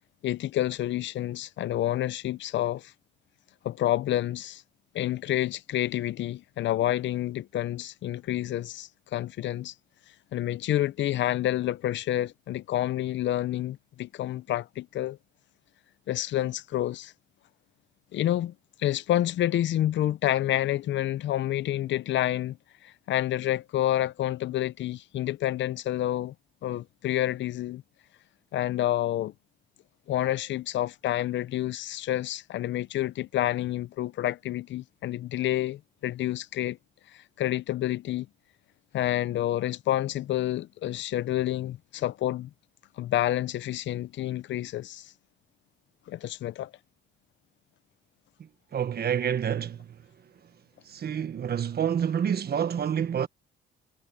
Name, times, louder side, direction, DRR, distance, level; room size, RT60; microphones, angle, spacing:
voice 1, 0.2-2.9 3.6-4.6 4.9-9.7 10.3-15.2 16.1-17.1 18.1-18.5 18.8-22.6 22.8-26.3 26.6-27.8 28.5-29.3 30.1-36.8 37.1-38.3 38.9-42.5 43.0-45.1 46.1-46.7, left 13 dB, 70° left, 0.6 m, -28 dB
voice 2, 48.7-49.8 50.9-53.3, right 8 dB, 55° right, 1.5 m, -28 dB
cardioid pair, 90°, 20 cm